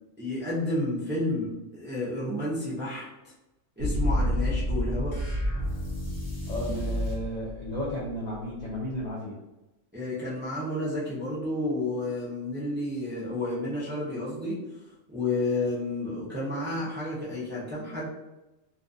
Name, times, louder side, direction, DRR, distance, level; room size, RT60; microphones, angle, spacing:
voice 1, 0.2-3.3 3.8-5.1 9.9-14.6 15.1-18.1, left 1 dB, 15° right, -8 dB, 0.4 m, -31 dB
sound 1, 3.8-9.0, left 1 dB, 75° right, 1.0 m, -30 dB
sound 2, 5.1-7.3, equal, 20° left, 1.0 m, -33 dB
voice 2, 6.5-9.4, equal, 80° left, -5 dB, 0.3 m, -33 dB
2.5 x 2.3 x 2.5 m, 0.99 s
omnidirectional pair, 1.4 m